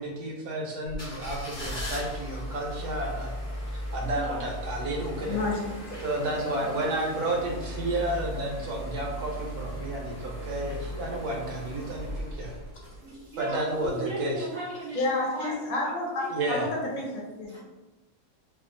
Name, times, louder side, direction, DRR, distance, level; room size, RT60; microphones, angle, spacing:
voice 1, 0.0-3.3 3.7-5.4 6.0-12.5 13.4-14.5 16.3-16.7, right 1 dB, 75° right, -1 dB, 1.2 m, -31 dB
sound 1, 0.9-13.3 13.8-13.9, equal, 15° left, 0.7 m, -37 dB
voice 2, 4.0-4.4 6.1-6.6 13.0-16.5 17.5-17.6, right 2 dB, 60° right, -6 dB, 0.8 m, -37 dB
voice 3, 5.2-6.0 14.9-17.5, left 2 dB, 65° left, -3 dB, 1.0 m, -30 dB
2.8 x 2.3 x 2.5 m, 1.1 s
omnidirectional pair, 1.7 m